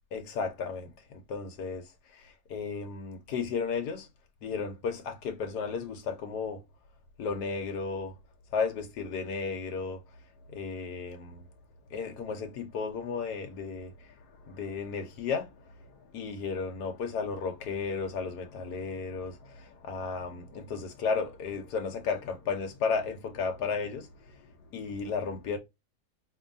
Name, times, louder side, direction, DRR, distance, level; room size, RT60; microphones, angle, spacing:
voice 1, 0.1-4.1 4.4-6.6 7.2-8.2 8.5-10.0 10.5-11.5 11.9-25.6, left 5 dB, 90° left, 1.4 m, -34 dB
4.5 x 3.0 x 2.5 m
omnidirectional pair, 1.7 m